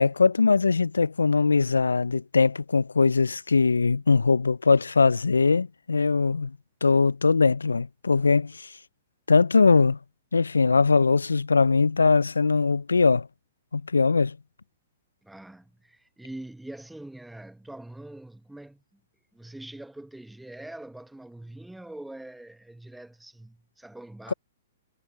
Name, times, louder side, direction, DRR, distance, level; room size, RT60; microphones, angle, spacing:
voice 1, 0.0-6.5 6.8-8.7 9.3-10.0 10.3-13.3 13.7-14.4, left 4 dB, 80° left, 0.3 m, -21 dB
voice 2, 15.2-19.0 19.3-24.3, right 1 dB, 5° right, 0.9 m, -43 dB
figure-of-eight pair, 115°, 0 cm